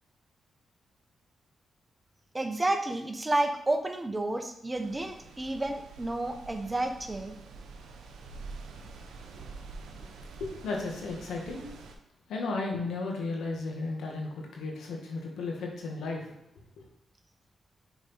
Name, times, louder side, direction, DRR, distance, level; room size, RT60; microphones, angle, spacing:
voice 1, 2.3-7.4, right 2 dB, 20° right, 6 dB, 1.0 m, -30 dB
sound 1, 4.7-12.0, right 3 dB, 85° right, 0.8 m, -46 dB
voice 2, 10.4-11.7 12.3-16.2, left 3 dB, 80° left, 0 dB, 1.7 m, -34 dB
6.2 x 4.9 x 4.2 m, 0.81 s
supercardioid pair, 55°, 0 cm